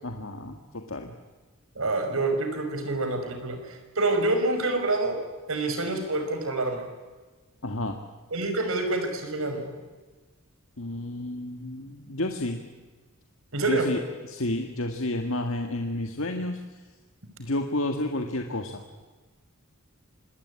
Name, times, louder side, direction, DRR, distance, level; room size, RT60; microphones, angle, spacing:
voice 1, 0.0-1.1 7.6-8.0 10.8-12.6 13.7-16.6 17.4-18.8, left 1 dB, 65° left, 4 dB, 1.8 m, -31 dB
voice 2, 1.8-5.2 5.5-6.8 8.3-9.7 13.5-13.9, right 2 dB, 70° right, 6 dB, 5.6 m, -27 dB
26.0 x 20.5 x 9.8 m, 1.3 s
head